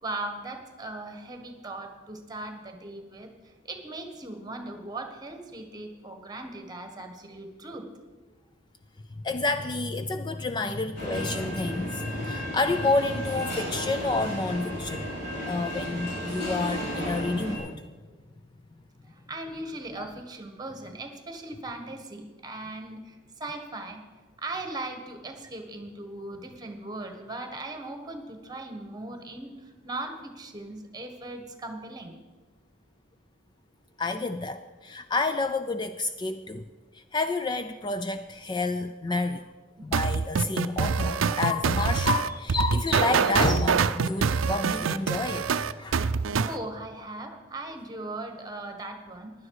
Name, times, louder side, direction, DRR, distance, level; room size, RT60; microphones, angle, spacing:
voice 1, 0.0-3.3 3.6-7.9 10.6-10.8 19.1-24.0 24.4-29.5 29.8-32.1 39.8-39.9 46.4-49.3, right 2 dB, 20° right, 6 dB, 1.4 m, -38 dB
voice 2, 9.2-15.1 15.5-17.8 20.0-20.1 34.0-36.7 36.9-39.5 39.8-46.1, left 3 dB, 25° left, 9 dB, 0.4 m, -29 dB
sound 1, 11.0-17.6, equal, 60° left, 5.4 m, -34 dB
sound 2, 39.9-46.6, right 5 dB, 90° right, 0.5 m, -25 dB
16.0 x 11.0 x 4.8 m, 1.3 s
head